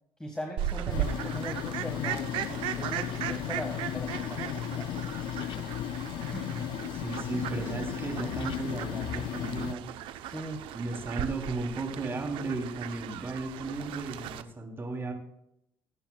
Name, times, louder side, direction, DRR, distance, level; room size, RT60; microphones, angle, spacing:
voice 1, 0.2-2.3 2.8-4.9 6.3-6.7 10.3-10.6, equal, 10° left, 2 dB, 1.7 m, -40 dB
Fowl, 0.6-14.4, right 11 dB, 80° right, 0.8 m, -37 dB
sound 1, 0.9-9.7, left 11 dB, 70° left, 0.4 m, -35 dB
voice 2, 6.9-10.0 10.7-15.1, right 3 dB, 30° right, 1 dB, 3.3 m, -35 dB
21.0 x 8.9 x 2.4 m, 0.79 s
cardioid pair, 110°, 9 cm